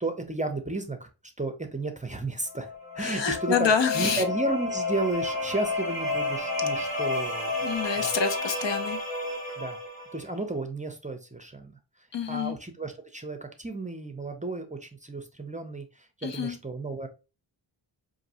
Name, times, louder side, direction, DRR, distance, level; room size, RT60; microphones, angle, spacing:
voice 1, 0.0-1.1 1.4-2.7 2.9-7.5 8.0-8.1 9.6-9.8 10.1-11.7 12.3-17.1, right 2 dB, 15° right, 0.5 m, -33 dB
sound 1, 2.5-10.2, left 3 dB, 20° left, 2.3 m, -31 dB
voice 2, 3.0-4.2 7.6-9.0 12.1-12.6 16.2-16.6, left 6 dB, 75° left, 0.7 m, -27 dB
5.0 x 2.6 x 2.7 m
wide cardioid pair, 135°, 44 cm